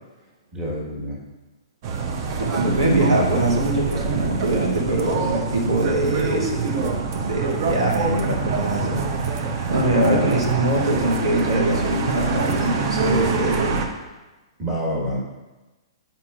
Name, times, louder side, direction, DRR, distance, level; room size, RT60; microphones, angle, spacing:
voice 1, 0.5-1.2 2.5-3.0 10.0-10.3 14.6-15.2, left 1 dB, 15° right, -4 dB, 1.6 m, -28 dB
sound 1, 1.8-13.9, right 4 dB, 40° right, 0.7 m, -25 dB
voice 2, 2.4-9.0 9.3-9.4 9.7-13.8, right 1 dB, 70° right, -2 dB, 1.2 m, -22 dB
8.4 x 5.5 x 2.5 m, 1.1 s
figure-of-eight pair, 115°, 3 cm